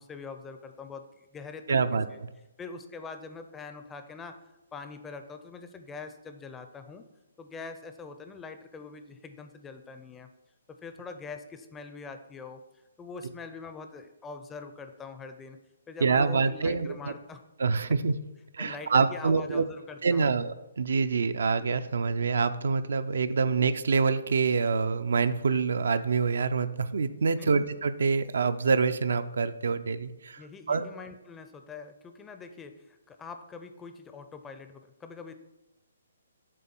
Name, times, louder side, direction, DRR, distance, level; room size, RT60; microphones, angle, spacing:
voice 1, 0.0-2.2 2.6-4.4 4.7-7.0 7.4-10.3 10.7-12.6 13.0-15.6 15.9-17.4 18.6-20.4 27.4-27.7 30.4-35.3, left 4 dB, 10° left, 7 dB, 0.4 m, -43 dB
voice 2, 1.7-2.1 16.0-17.1 17.6-18.1 18.5-19.7 20.0-30.4 30.7-30.9, right 5 dB, 75° right, 11 dB, 0.4 m, -26 dB
7.7 x 3.4 x 5.9 m, 0.96 s
hypercardioid pair, 155°, 0 cm